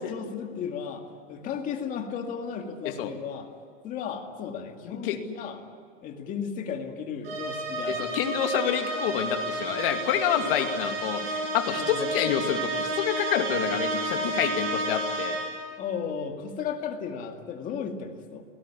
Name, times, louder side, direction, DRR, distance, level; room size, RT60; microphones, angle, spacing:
voice 1, 0.0-3.5 3.8-5.6 6.0-8.1 11.7-12.1 15.8-18.4, left 6 dB, 20° left, 4 dB, 2.1 m, -35 dB
sound 1, 7.2-15.8, right 2 dB, 50° right, 6.3 m, -31 dB
voice 2, 7.9-15.4, left 9 dB, 45° left, 5 dB, 2.5 m, -28 dB
23.5 x 18.5 x 10.0 m, 2.2 s
supercardioid pair, 170°, 38 cm